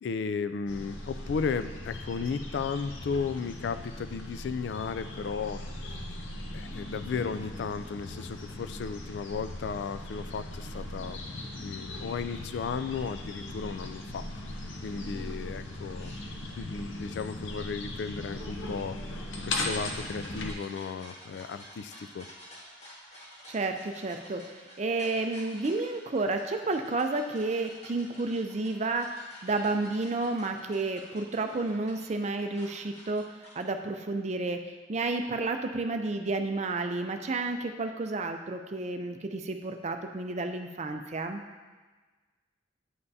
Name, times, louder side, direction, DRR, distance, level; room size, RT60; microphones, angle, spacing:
voice 1, 0.0-5.6 5.9-6.0 6.5-11.2 11.6-14.3 14.8-16.1 16.6-19.2 19.5-22.3, left 5 dB, 65° left, 12 dB, 0.3 m, -34 dB
sound 1, 0.7-20.5, left 1 dB, 90° left, 0.8 m, -39 dB
sound 2, 15.9-16.2 18.2-33.6, equal, 35° left, 1.6 m, -51 dB
voice 2, 23.5-29.2 29.4-33.3 33.6-34.6 34.9-41.4, right 3 dB, 35° right, 6 dB, 0.5 m, -31 dB
9.5 x 5.6 x 2.7 m, 1.3 s
head